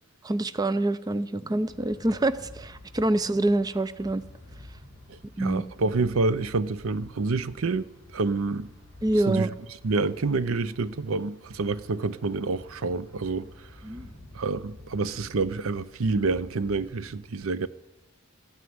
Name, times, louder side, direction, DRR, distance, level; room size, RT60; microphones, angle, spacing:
voice 1, 0.2-4.2 5.4-5.6 9.0-9.5 13.8-14.1, right 2 dB, 20° right, 0.4 m, -26 dB
sound 1, 1.6-17.1, left 1 dB, 45° right, 5.2 m, -49 dB
voice 2, 5.1-7.9 8.1-8.7 9.3-9.5 9.8-13.5 14.3-17.7, right 3 dB, 75° right, 0.6 m, -28 dB
14.5 x 9.4 x 9.5 m
head